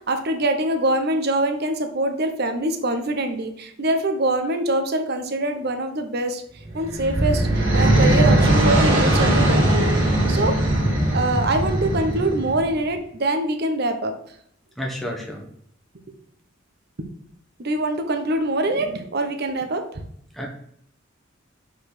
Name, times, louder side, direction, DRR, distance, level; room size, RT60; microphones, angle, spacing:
voice 1, 0.1-6.4 6.7-9.9 10.3-10.5 11.1-14.1 17.6-19.8, right 2 dB, 55° right, 6 dB, 0.8 m, -24 dB
sound 1, 6.6-12.7, right 1 dB, 70° right, 2.8 m, -19 dB
voice 2, 14.8-15.5 20.3-20.5, equal, ahead, -1 dB, 1.1 m, -30 dB
5.8 x 4.0 x 5.9 m, 0.67 s
head